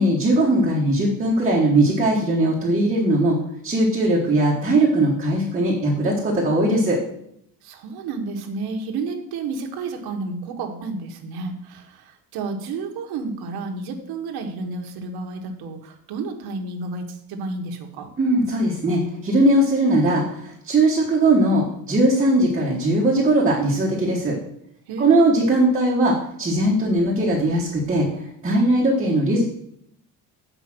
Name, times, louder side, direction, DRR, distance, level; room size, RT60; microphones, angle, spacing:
voice 1, 0.0-7.0 18.2-24.4 25.0-28.1 28.4-29.4, right 1 dB, 20° right, -4 dB, 1.3 m, -19 dB
voice 2, 7.6-18.1 24.9-25.2, right 3 dB, 80° right, 3 dB, 1.5 m, -31 dB
8.3 x 5.0 x 6.1 m, 0.73 s
cardioid pair, 170°, 37 cm